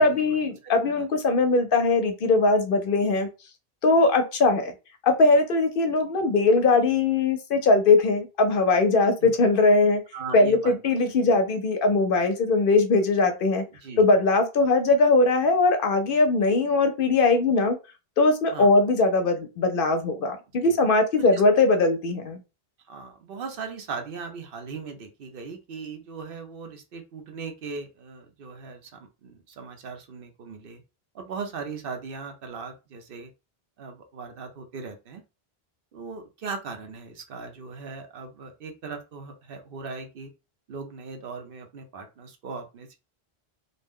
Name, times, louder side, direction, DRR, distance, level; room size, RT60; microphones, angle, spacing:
voice 1, 0.0-3.3 3.8-4.7 5.0-10.0 10.3-13.6 14.0-17.8 18.2-22.4, left 3 dB, 65° left, 7 dB, 0.7 m, -20 dB
voice 2, 10.1-10.7 13.8-14.0 18.5-18.7 20.6-20.7 21.2-21.4 22.9-30.8 31.1-33.3 33.8-35.2 35.9-40.3 40.7-43.0, right 4 dB, 65° right, 5 dB, 0.8 m, -38 dB
2.6 x 2.1 x 3.5 m, 0.28 s
omnidirectional pair, 1.1 m